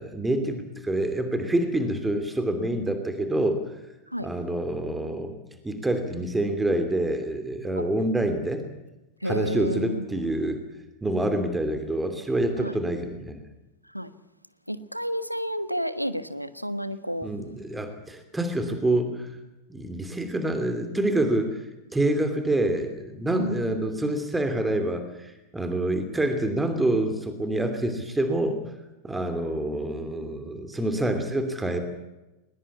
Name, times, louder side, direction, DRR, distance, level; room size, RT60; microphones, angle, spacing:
voice 1, 0.0-3.7 4.2-5.3 5.6-8.6 9.2-10.6 11.0-13.4 17.2-19.4 19.7-21.6 21.9-28.6 29.0-31.8, right 1 dB, 10° right, 8 dB, 2.8 m, -27 dB
voice 2, 9.2-10.0 12.6-12.8 13.9-14.1 14.7-17.3 23.4-23.6 24.0-24.2, equal, 90° right, 13 dB, 1.3 m, -31 dB
21.0 x 20.5 x 8.4 m, 1.0 s
figure-of-eight pair, 90°, 0 cm